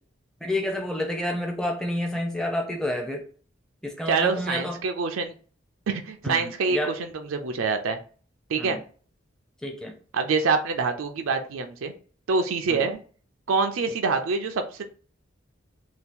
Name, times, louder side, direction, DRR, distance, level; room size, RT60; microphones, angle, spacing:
voice 1, 0.4-3.2 3.8-4.8 6.2-7.0 8.6-8.8 9.6-10.0 12.7-12.9, left 1 dB, 5° left, 2 dB, 0.5 m, -29 dB
voice 2, 4.1-5.3 5.9-6.8 7.1-8.0 8.5-8.8 10.1-11.9 12.3-13.0 13.5-14.8, right 4 dB, 85° right, 6 dB, 0.4 m, -25 dB
2.8 x 2.3 x 3.5 m, 0.41 s
head